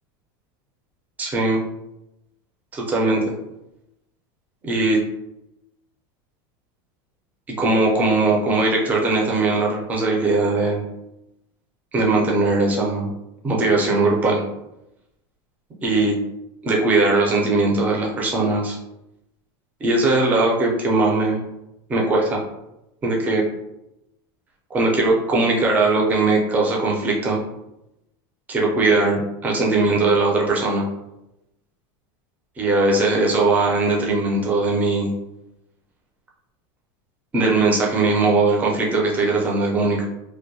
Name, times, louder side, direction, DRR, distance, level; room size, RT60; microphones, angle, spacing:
voice 1, 1.2-1.6 2.7-3.2 4.6-5.0 7.6-10.8 11.9-13.1 13.4-14.4 15.8-16.2 16.6-18.8 19.8-21.4 21.9-22.4 23.0-23.4 24.7-27.4 28.5-30.8 32.6-35.1 37.3-40.0, right 2 dB, 15° right, -2 dB, 0.4 m, -19 dB
2.5 x 2.1 x 2.6 m, 0.88 s
supercardioid pair, 170°, 12 cm